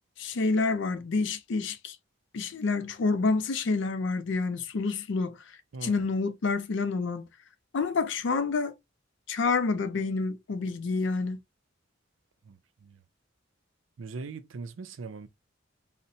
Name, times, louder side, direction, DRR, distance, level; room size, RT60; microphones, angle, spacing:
voice 1, 0.2-2.0 2.3-5.4 5.8-7.3 7.7-8.7 9.3-11.4, left 4 dB, 65° left, 0.4 m, -28 dB
voice 2, 5.7-6.1 12.4-13.0 14.0-15.3, right 4 dB, 80° right, 0.5 m, -41 dB
4.1 x 2.1 x 2.6 m
head